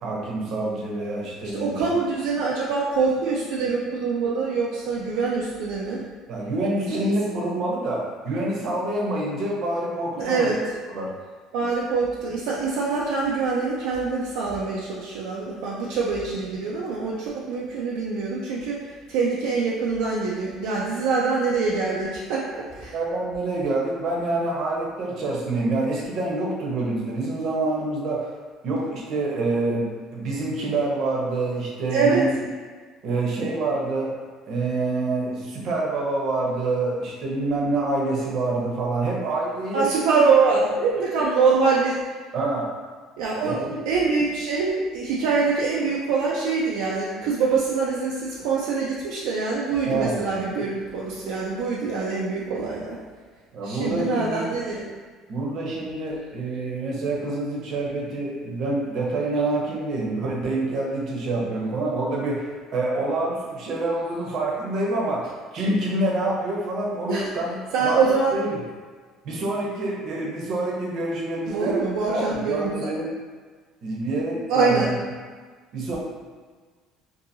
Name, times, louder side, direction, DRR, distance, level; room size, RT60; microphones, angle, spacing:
voice 1, 0.0-1.9 6.3-10.5 10.9-11.1 22.8-28.3 28.6-32.3 33.0-34.2 34.5-39.9 42.3-42.7 43.4-43.8 49.9-50.2 53.5-54.4 55.3-68.0 68.3-68.6 69.2-71.8 72.1-73.2 73.8-74.8 75.7-76.0, right 2 dB, 55° right, -3 dB, 0.7 m, -26 dB
voice 2, 1.5-6.0 6.9-7.0 10.2-10.6 11.5-18.8 19.1-22.9 31.9-32.2 39.7-42.0 43.2-43.6 43.8-53.0 53.6-54.8 67.1-67.3 67.7-68.3 71.5-72.9 74.5-74.9, right 4 dB, 80° right, -5 dB, 0.4 m, -24 dB
2.7 x 2.6 x 2.7 m, 1.5 s
cardioid pair, 110°, 0 cm